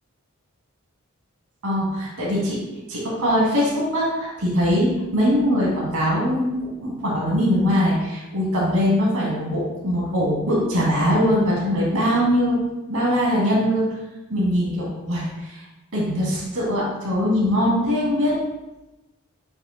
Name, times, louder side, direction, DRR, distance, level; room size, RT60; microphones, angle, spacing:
voice 1, 1.6-2.6 2.9-6.5 6.8-13.8 14.3-15.6 15.9-18.3, equal, 80° right, -6 dB, 2.4 m, -21 dB
8.6 x 6.1 x 2.2 m, 1.0 s
head